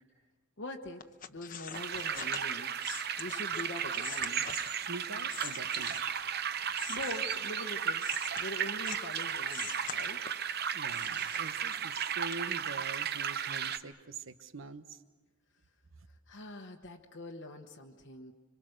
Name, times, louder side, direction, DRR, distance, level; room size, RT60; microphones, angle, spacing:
voice 1, 0.6-1.0 1.3-2.7 3.2-4.4 6.6-8.1 8.4-10.2 16.3-18.3, left 1 dB, 55° left, 1 dB, 1.2 m, -43 dB
sound 1, 1.0-6.3 6.7-9.1 9.5-10.5 10.9-12.0 12.3-12.4, left 8 dB, 40° left, 0.9 m, -45 dB
sound 2, 1.7-13.8, right 8 dB, 45° right, 0.7 m, -35 dB
voice 2, 4.7-6.1 10.7-15.0, right 3 dB, 65° right, 10 dB, 1.2 m, -45 dB
26.0 x 25.0 x 6.5 m, 1.3 s
head